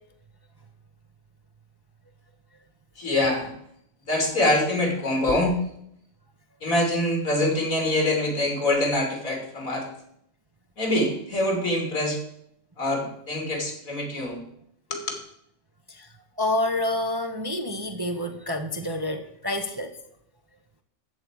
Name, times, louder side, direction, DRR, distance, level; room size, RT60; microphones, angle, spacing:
voice 1, 3.0-3.5 4.1-5.6 6.6-9.9 10.8-12.2 12.8-14.4 14.9-15.1, left 1 dB, 80° left, 2 dB, 3.3 m, -24 dB
voice 2, 16.4-19.9, left 1 dB, 25° right, 6 dB, 0.6 m, -28 dB
14.0 x 4.7 x 8.8 m, 0.74 s
omnidirectional pair, 1.4 m